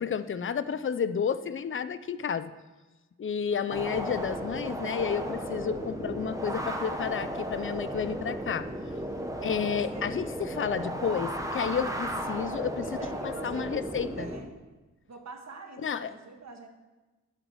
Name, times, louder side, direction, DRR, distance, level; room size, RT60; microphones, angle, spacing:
voice 1, 0.0-2.5 3.2-8.7 9.4-13.0 13.2-14.3 15.8-16.1, left 7 dB, 45° left, 14 dB, 0.5 m, -31 dB
sound 1, 3.7-14.4, right 1 dB, 10° right, 1.1 m, -35 dB
voice 2, 8.9-9.4 9.7-10.1 12.2-12.4 12.8-14.6 15.1-16.7, right 4 dB, 65° right, 3 dB, 1.5 m, -46 dB
8.5 x 8.0 x 7.9 m, 1.2 s
wide cardioid pair, 140°, 29 cm